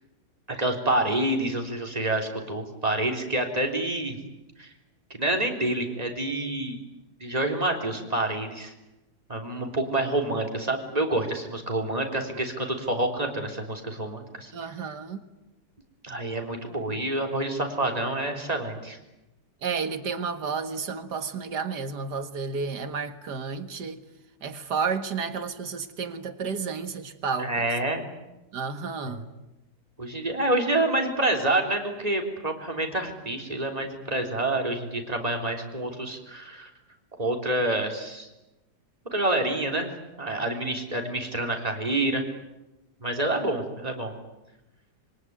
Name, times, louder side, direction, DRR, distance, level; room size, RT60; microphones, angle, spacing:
voice 1, 0.5-4.2 4.6-4.7 5.1-6.8 7.2-8.7 9.3-14.7 16.0-19.0 27.4-28.1 29.1-29.2 30.0-36.7 37.2-38.3 39.1-39.9 40.2-42.2 43.0-44.1, right 1 dB, 20° right, 3.7 m, -27 dB
voice 2, 14.5-15.2 19.6-24.0 24.4-27.6 28.5-29.2, right 5 dB, 75° right, 2.3 m, -31 dB
26.5 x 23.5 x 9.6 m
omnidirectional pair, 1.8 m